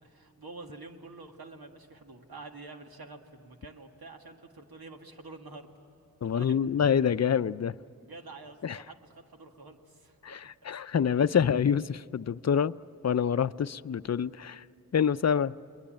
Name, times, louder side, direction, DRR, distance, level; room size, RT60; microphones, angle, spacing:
voice 1, 0.0-5.7 6.2-6.6 8.0-10.2 10.7-10.8, right 3 dB, 85° right, 4 dB, 2.0 m, -47 dB
voice 2, 6.2-7.8 8.6-8.8 10.2-12.7 13.0-14.6 14.9-15.5, left 7 dB, 45° left, 14 dB, 0.6 m, -26 dB
29.5 x 21.0 x 8.8 m, 2.9 s
cardioid pair, 50°, 36 cm